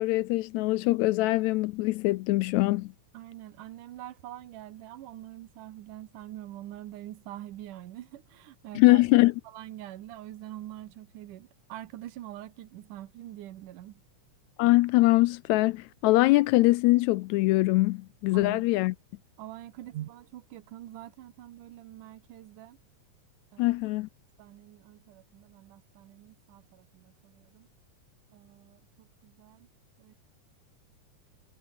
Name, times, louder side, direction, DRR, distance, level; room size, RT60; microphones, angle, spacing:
voice 1, 0.0-2.9 8.8-9.3 14.6-18.9 23.6-24.1, left 19 dB, 80° left, 1.7 m, -23 dB
voice 2, 3.1-9.0 9.4-14.0 18.3-18.6 19.4-22.8 23.5-23.8 24.4-27.7 28.3-29.7 30.0-30.1, right 13 dB, 85° right, 2.7 m, -44 dB
omnidirectional pair, 3.6 m